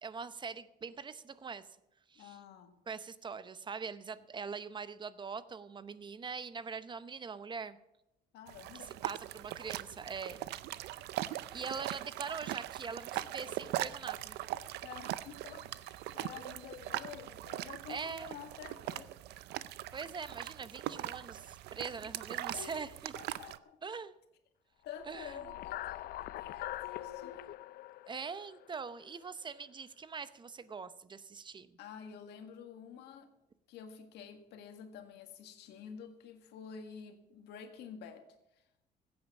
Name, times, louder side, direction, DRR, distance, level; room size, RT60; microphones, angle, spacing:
voice 1, 0.0-1.6 2.1-2.4 2.9-7.8 8.7-10.4 11.5-14.4 17.9-18.4 19.9-23.1 23.8-24.1 25.1-25.3 28.1-31.7, right 5 dB, 25° right, 14 dB, 0.7 m, -43 dB
voice 2, 2.2-2.7 8.3-8.9 14.8-19.1 22.5-23.8 24.8-27.5 31.8-33.3 33.7-38.4, left 7 dB, 85° left, 7 dB, 1.8 m, -49 dB
sound 1, 8.5-23.6, right 14 dB, 80° right, 0.6 m, -41 dB
sound 2, 25.0-29.3, left 15 dB, 65° left, 0.5 m, -43 dB
15.5 x 8.8 x 6.0 m, 0.88 s
cardioid pair, 110°, 17 cm